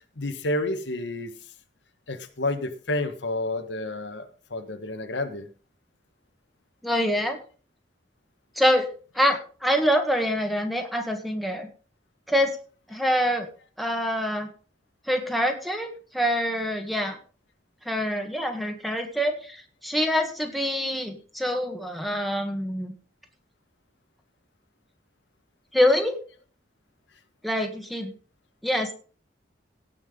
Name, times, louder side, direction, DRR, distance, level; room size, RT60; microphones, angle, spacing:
voice 1, 0.2-1.3 2.1-5.5, left 2 dB, 85° left, 8 dB, 1.5 m, -30 dB
voice 2, 6.8-7.4 8.6-8.9 9.1-11.7 12.3-12.6 12.9-13.5 13.8-14.5 15.1-17.2 17.9-22.9 25.7-26.2 27.4-28.1 28.6-28.9, equal, ahead, 3 dB, 1.9 m, -25 dB
17.0 x 5.9 x 5.3 m, 0.39 s
head